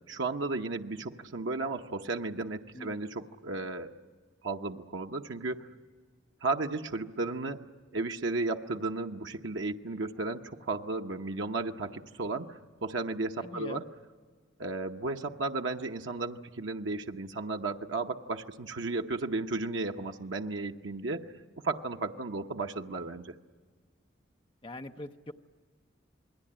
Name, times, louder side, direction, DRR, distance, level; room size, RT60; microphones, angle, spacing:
voice 1, 0.1-3.9 4.4-5.7 6.4-7.6 7.9-13.8 14.6-21.3 21.6-23.3, right 3 dB, 80° right, 3 dB, 1.0 m, -34 dB
voice 2, 13.4-13.8 24.6-25.3, left 2 dB, 25° left, 5 dB, 0.8 m, -42 dB
27.5 x 21.0 x 8.8 m, 1.5 s
head